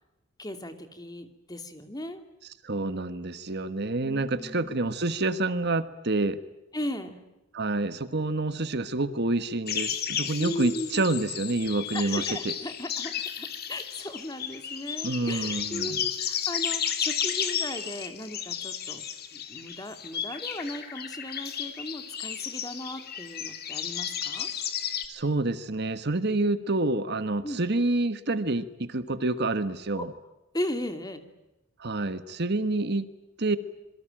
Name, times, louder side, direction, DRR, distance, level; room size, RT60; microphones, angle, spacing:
voice 1, 0.4-2.2 4.0-4.9 6.7-7.2 10.4-11.0 11.9-19.0 19.3-24.5 27.4-27.6 30.0-30.1 30.5-31.2, left 1 dB, 20° left, 8 dB, 2.7 m, -37 dB
voice 2, 2.6-6.4 7.5-12.5 15.0-16.0 25.1-30.1 31.8-33.1 33.4-33.6, right 2 dB, 55° right, 12 dB, 1.4 m, -28 dB
sound 1, 9.7-25.0, left 8 dB, 50° left, 2.8 m, -33 dB
27.5 x 22.5 x 9.0 m, 0.96 s
head